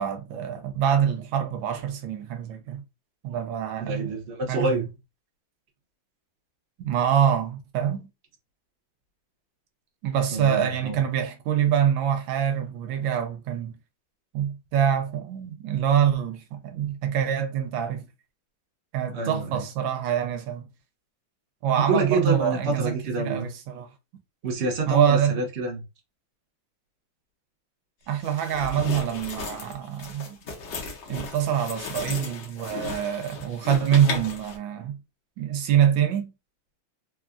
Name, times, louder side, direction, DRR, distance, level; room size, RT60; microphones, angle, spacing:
voice 1, 0.0-2.8 3.2-4.1 4.5-4.9 6.8-8.1 10.0-13.7 14.3-18.1 18.9-20.7 21.6-23.9 24.9-25.4 28.1-30.4 31.1-35.0 35.4-36.3, right 9 dB, 80° right, 1.3 m, -25 dB
voice 2, 3.8-4.8 10.3-11.0 19.1-19.6 21.7-23.5 24.4-25.8, right 3 dB, 45° right, 0.9 m, -27 dB
sound 1, 28.2-34.6, left 5 dB, 65° left, 1.4 m, -36 dB
3.6 x 2.3 x 2.5 m
omnidirectional pair, 2.2 m